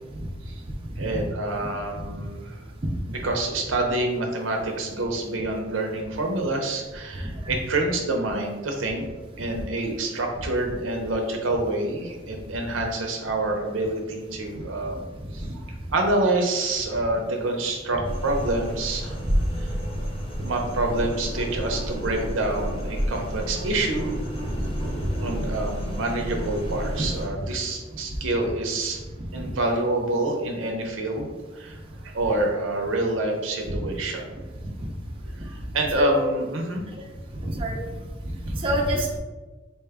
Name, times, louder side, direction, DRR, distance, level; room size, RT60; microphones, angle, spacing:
voice 1, 1.0-2.6 3.2-9.0 9.4-15.0 15.3-15.5 15.9-19.1 19.6-19.7 20.4-24.2 25.2-29.0 29.3-34.3 35.4-36.8, right 2 dB, 80° right, 2 dB, 0.6 m, -27 dB
sound 1, 18.0-27.3, equal, 30° left, 0.8 m, -30 dB
voice 2, 37.4-37.8 38.5-39.2, equal, 30° right, -1 dB, 0.5 m, -26 dB
4.3 x 2.2 x 3.4 m, 1.3 s
head